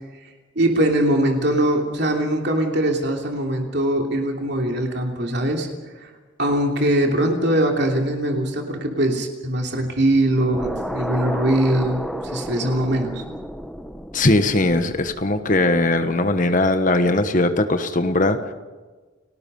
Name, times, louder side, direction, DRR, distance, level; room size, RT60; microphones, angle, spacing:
voice 1, 0.5-5.7 6.0-6.1 6.4-13.2, right 1 dB, 55° right, 2 dB, 3.0 m, -21 dB
sound 1, 10.5-15.8, equal, ahead, 0.9 m, -32 dB
voice 2, 14.1-18.5, left 2 dB, 40° left, 8 dB, 1.3 m, -19 dB
30.0 x 19.5 x 5.5 m, 1.3 s
head